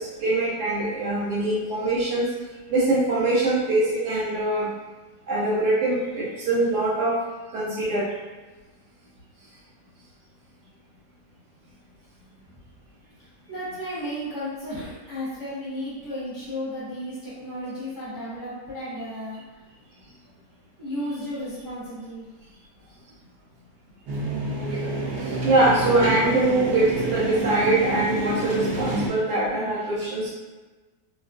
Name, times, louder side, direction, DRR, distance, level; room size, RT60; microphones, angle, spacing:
voice 1, 0.0-2.2 2.7-4.7 5.3-7.3 7.5-8.1 24.7-24.8 25.2-30.3, right 2 dB, 80° right, -7 dB, 1.1 m, -23 dB
voice 2, 13.5-19.4 20.8-22.3, equal, 35° left, -11 dB, 1.0 m, -33 dB
sound 1, 24.1-29.1, right 2 dB, 65° right, 0.7 m, -28 dB
2.5 x 2.3 x 2.3 m, 1.2 s
omnidirectional pair, 1.6 m